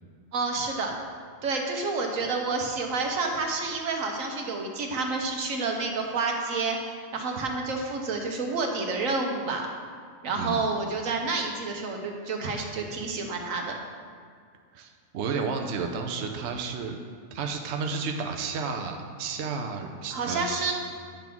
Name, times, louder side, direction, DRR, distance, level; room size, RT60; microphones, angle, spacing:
voice 1, 0.3-0.9 1.4-9.7 10.2-13.7 20.1-20.7, right 3 dB, 80° right, 2 dB, 1.3 m, -29 dB
voice 2, 14.7-17.0 17.3-20.5, right 5 dB, 65° right, 4 dB, 0.9 m, -32 dB
10.5 x 3.6 x 5.9 m, 2.1 s
omnidirectional pair, 1.4 m